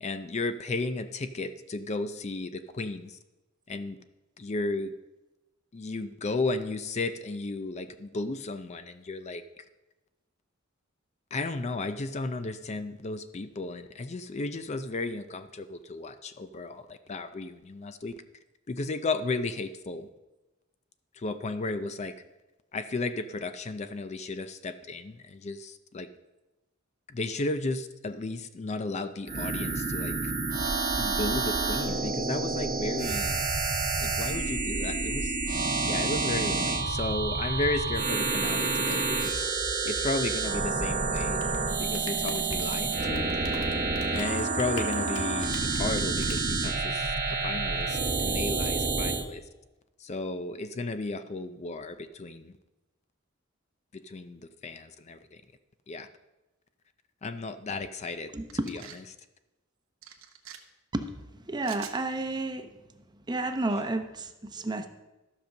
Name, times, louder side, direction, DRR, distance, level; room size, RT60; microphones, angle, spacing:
voice 1, 0.0-3.2 3.7-4.0 4.4-4.9 5.7-9.6 11.3-18.1 18.7-20.1 21.1-22.2 22.7-26.1 27.1-30.3 31.0-33.4 34.0-39.5 39.8-41.4 41.8-43.3 44.1-49.4 50.0-52.5 53.9-55.4 55.9-56.1 57.2-58.3 58.7-58.8, left 3 dB, 35° left, 10 dB, 0.4 m, -34 dB
sound 1, 29.3-49.2, right 3 dB, 40° right, 1.0 m, -29 dB
Rain, 41.0-47.8, left 3 dB, 85° left, 1.6 m, -44 dB
voice 2, 58.3-58.7 60.9-61.1 61.5-62.7 63.3-64.9, right 2 dB, 20° right, 7 dB, 0.7 m, -31 dB
sound 2, 58.5-59.0 60.0-60.6 61.6-62.0, right 9 dB, 90° right, 1.0 m, -45 dB
13.0 x 5.2 x 6.5 m, 1.0 s
head